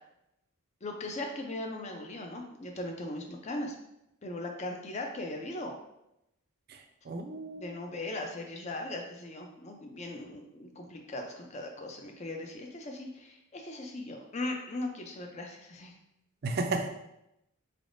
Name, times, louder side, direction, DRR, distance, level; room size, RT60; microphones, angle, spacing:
voice 1, 0.8-3.7 4.2-5.7 7.6-15.9, left 2 dB, 30° left, 3 dB, 0.5 m, -39 dB
voice 2, 6.7-7.7 16.4-16.9, right 3 dB, 45° right, 5 dB, 0.4 m, -34 dB
3.9 x 3.4 x 2.5 m, 0.84 s
head